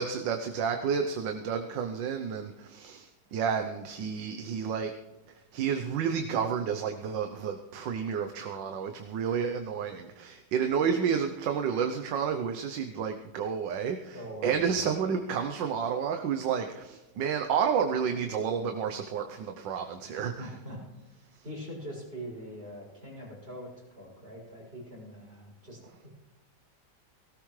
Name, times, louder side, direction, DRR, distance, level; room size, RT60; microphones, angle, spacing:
voice 1, 0.0-4.9 5.3-20.5, right 7 dB, 85° right, 5 dB, 1.5 m, -30 dB
voice 2, 14.1-14.7 20.4-20.8 21.1-26.1, equal, 30° right, -5 dB, 7.1 m, -43 dB
18.5 x 16.5 x 3.2 m, 1.1 s
omnidirectional pair, 1.9 m